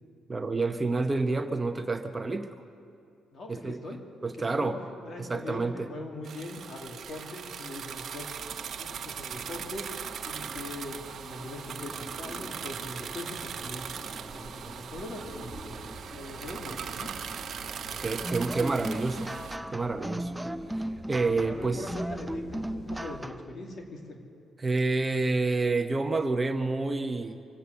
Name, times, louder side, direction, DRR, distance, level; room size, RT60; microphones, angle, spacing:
voice 1, 0.3-2.5 3.5-3.8 4.2-4.8 5.2-5.9 18.0-19.3 19.7-20.3 20.7-21.9 24.6-27.4, right 3 dB, 25° right, 7 dB, 0.8 m, -29 dB
voice 2, 3.3-4.7 5.0-8.3 8.8-9.9 10.3-13.8 14.3-15.8 16.1-17.2 21.4-24.2, left 2 dB, 50° left, 1 dB, 2.4 m, -41 dB
sound 1, 6.2-19.6, right 8 dB, 60° right, 0.8 m, -39 dB
sound 2, 8.3-23.2, left 1 dB, 20° left, 1.6 m, -47 dB
sound 3, 18.2-23.6, right 1 dB, 10° right, 0.4 m, -36 dB
25.0 x 8.3 x 6.9 m, 2.5 s
cardioid pair, 90°, 0 cm